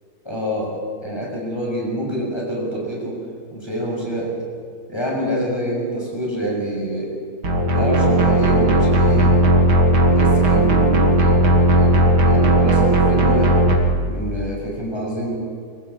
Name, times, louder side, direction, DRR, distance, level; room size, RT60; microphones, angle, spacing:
voice 1, 0.2-3.2 3.5-4.3 4.9-7.2 7.7-9.3 10.1-13.6 14.1-15.4, equal, 10° left, -2 dB, 6.6 m, -26 dB
sound 1, 7.4-13.8, right 1 dB, 80° right, 3.4 m, -15 dB
25.5 x 15.0 x 8.5 m, 2.3 s
omnidirectional pair, 2.2 m